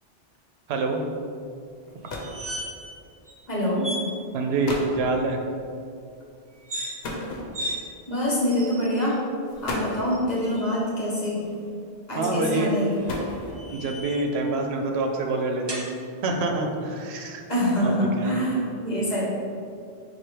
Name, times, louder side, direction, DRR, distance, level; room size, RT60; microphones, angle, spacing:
voice 1, 0.7-1.0 4.3-5.4 12.2-12.7 13.7-15.9 16.2-17.4 17.8-18.3, right 2 dB, 75° right, 3 dB, 0.8 m, -26 dB
sound 1, 1.9-2.5 3.5-3.7 4.3-4.4 4.6-5.0 7.0-7.9 8.8-9.0 9.5-10.1 11.4-11.9 12.7-13.8, left 2 dB, 70° left, 1.0 m, -34 dB
sound 2, 2.1-3.0 3.3-3.4 3.8-4.1 6.5-6.9 7.5-7.8 8.5-9.1 10.0-10.8 12.7-14.3 15.7-15.9, equal, 30° right, 0.6 m, -36 dB
voice 2, 3.5-3.9 8.1-9.2 9.6-11.4 12.1-12.9 17.5-19.2, equal, 40° left, -6 dB, 1.2 m, -25 dB
4.7 x 2.4 x 4.4 m, 2.4 s
omnidirectional pair, 1.1 m